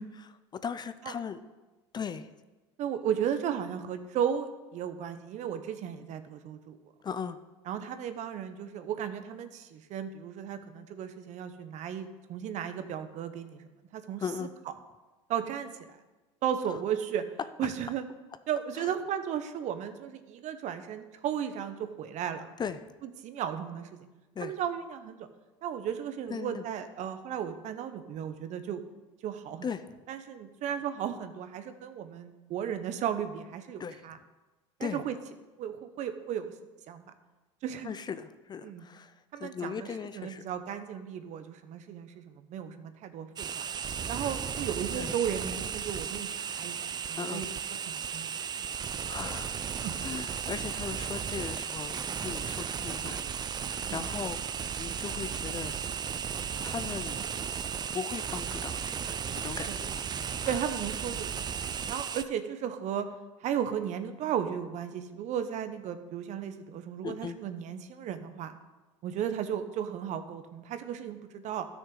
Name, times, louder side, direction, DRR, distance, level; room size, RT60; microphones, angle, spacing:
voice 1, 0.3-1.4 1.9-2.3 7.0-7.4 14.2-14.5 18.8-18.9 22.6-22.8 24.4-24.5 26.3-26.6 29.6-30.0 33.8-34.0 34.8-35.0 37.8-40.4 44.2-44.3 45.0-45.1 47.2-47.5 49.1-49.6 50.0-55.7 56.6-57.2 57.9-58.9 59.3-60.1 60.4-60.6 67.0-67.4, left 6 dB, 25° left, 12 dB, 0.5 m, -38 dB
voice 2, 2.8-6.8 7.7-13.6 13.9-14.2 15.3-16.0 16.4-17.2 17.6-18.0 18.5-22.5 23.0-23.9 24.4-25.2 25.6-28.8 29.2-29.7 30.1-34.2 34.8-35.1 35.6-36.5 36.9-37.0 37.6-37.9 38.6-38.9 39.3-39.9 40.1-43.7 44.1-47.5 47.9-48.3 48.6-48.7 49.8-49.9 53.9-54.0 59.7-59.8 60.4-61.5 61.9-63.1 63.4-68.5 69.0-71.7, right 9 dB, 50° right, 10 dB, 0.9 m, -35 dB
sound 1, 43.4-62.2, right 7 dB, 25° right, 0.5 m, -35 dB
13.0 x 6.3 x 3.9 m, 1.2 s
hypercardioid pair, 85°, 16 cm